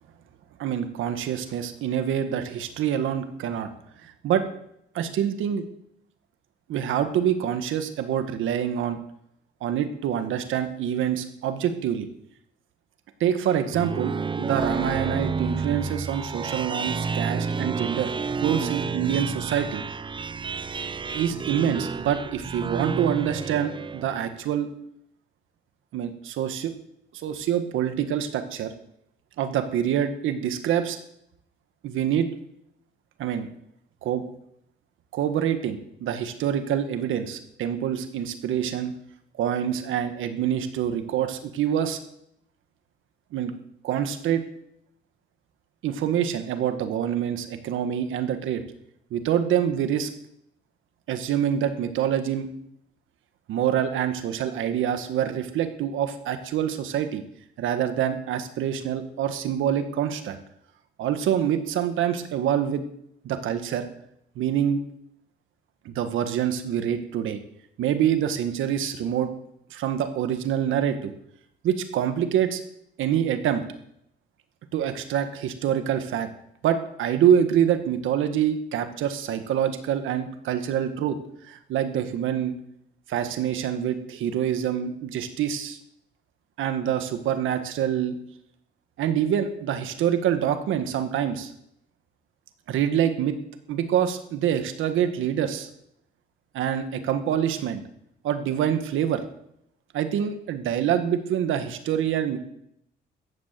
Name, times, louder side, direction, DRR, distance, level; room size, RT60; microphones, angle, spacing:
voice 1, 0.6-3.7 4.0-4.4 4.9-5.6 6.7-9.0 9.6-12.1 13.2-14.1 14.4-18.1 18.4-19.8 21.1-24.7 25.9-26.7 27.2-28.7 29.4-31.0 31.8-32.3 33.2-33.5 34.0-34.2 35.1-38.9 39.4-42.0 43.3-43.5 43.8-44.4 45.8-48.6 49.1-50.1 51.1-52.5 53.5-57.2 57.6-60.4 61.0-62.8 63.2-63.9 64.3-64.8 65.8-67.4 67.8-69.3 69.7-71.1 71.6-72.6 73.0-73.6 74.7-76.3 76.6-81.2 81.5-82.5 83.1-85.8 86.6-88.1 89.0-91.5 92.7-93.4 93.7-95.7 96.5-97.8 98.2-99.2 99.9-102.4, right 9 dB, 85° right, 9 dB, 1.6 m, -26 dB
sound 1, 13.5-24.3, right 5 dB, 25° right, 0.6 m, -30 dB
15.0 x 9.2 x 7.5 m, 0.75 s
cardioid pair, 90°, 20 cm